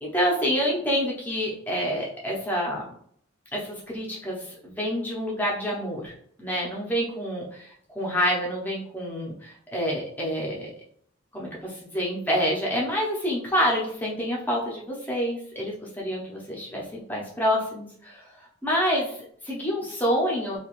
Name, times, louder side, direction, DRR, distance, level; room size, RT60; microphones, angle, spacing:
voice 1, 0.0-2.8 3.5-6.1 6.4-10.7 11.3-18.3 18.6-20.6, equal, 10° left, -4 dB, 0.7 m, -27 dB
2.8 x 2.4 x 3.0 m, 0.63 s
head